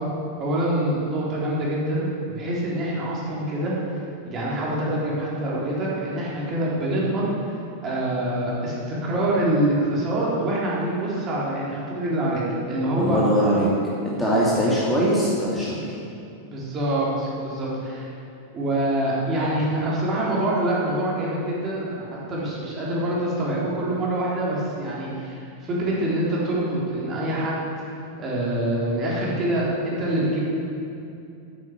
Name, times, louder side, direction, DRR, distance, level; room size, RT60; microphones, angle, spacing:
voice 1, 0.4-3.8 4.2-7.3 7.8-13.2 14.1-14.4 16.4-18.1 18.5-27.7 28.2-30.4, right 1 dB, 30° right, -5 dB, 3.6 m, -25 dB
voice 2, 13.0-13.7 14.0-15.8, equal, 5° left, -8 dB, 2.5 m, -21 dB
9.7 x 9.5 x 7.9 m, 2.6 s
figure-of-eight pair, 90°, 0 cm